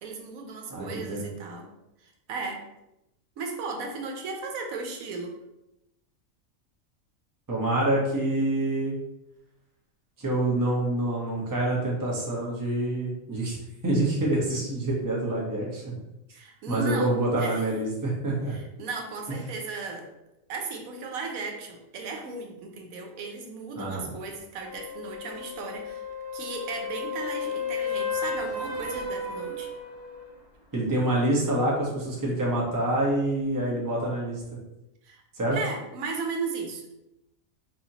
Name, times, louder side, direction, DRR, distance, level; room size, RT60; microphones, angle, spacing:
voice 1, 0.0-1.7 2.0-2.6 3.4-5.4 16.3-17.7 18.5-20.1 20.5-26.0 26.3-29.7 35.0-35.2 35.5-37.0, right 4 dB, 80° right, 2 dB, 1.1 m, -36 dB
voice 2, 0.7-1.3 7.5-9.0 10.2-13.6 13.8-15.9 16.7-18.5 23.8-24.1 30.7-34.4 35.3-35.6, right 1 dB, 15° right, -4 dB, 0.8 m, -26 dB
sound 1, 24.6-30.3 34.4-34.5, left 4 dB, 25° left, 0.6 m, -33 dB
4.2 x 2.8 x 2.8 m, 0.91 s
omnidirectional pair, 1.4 m